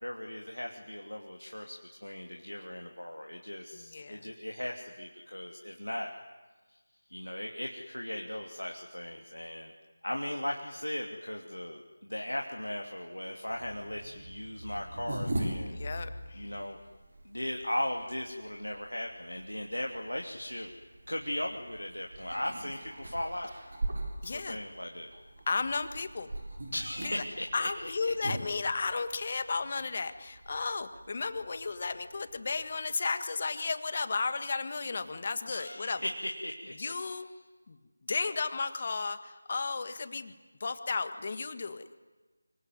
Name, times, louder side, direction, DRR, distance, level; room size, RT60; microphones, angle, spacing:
voice 1, 0.0-6.1 6.7-6.8 7.1-9.7 10.0-15.8 16.3-16.8 17.2-20.7 21.1-23.5 24.2-25.1 26.7-27.7 28.0-28.1 35.5-36.7, left 1 dB, 85° left, 2 dB, 2.8 m, -37 dB
voice 2, 3.7-4.3 15.7-16.5 24.2-24.6 25.5-26.3 27.0-27.1 27.5-36.0 36.8-37.3 37.7-37.8 38.1-40.3 40.6-41.8, left 4 dB, 35° left, 11 dB, 1.7 m, -34 dB
sound 1, 13.4-32.9, right 1 dB, 50° right, 7.5 m, -42 dB
25.5 x 24.0 x 9.5 m, 1.3 s
figure-of-eight pair, 165°, 0 cm